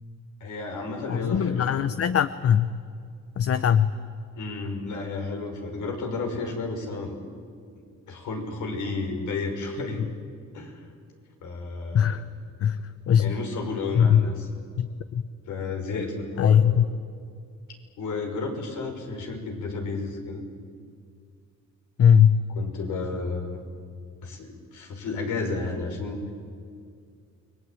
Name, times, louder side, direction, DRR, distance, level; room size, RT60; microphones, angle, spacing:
voice 1, 0.4-1.8 4.4-7.2 8.1-10.0 10.5-10.9 11.4-12.2 13.2-14.5 15.5-16.6 18.0-20.4 22.5-23.6 24.2-26.3, left 3 dB, 75° left, 3 dB, 5.8 m, -32 dB
voice 2, 1.1-2.7 3.4-3.9 11.9-12.2 12.6-12.8 13.1-13.3 13.9-14.2 14.8-14.9 15.1-15.3 16.4-16.8 22.0-22.4, left 8 dB, 50° left, 12 dB, 0.9 m, -20 dB
29.5 x 21.0 x 9.1 m, 2.2 s
cardioid pair, 90°, 30 cm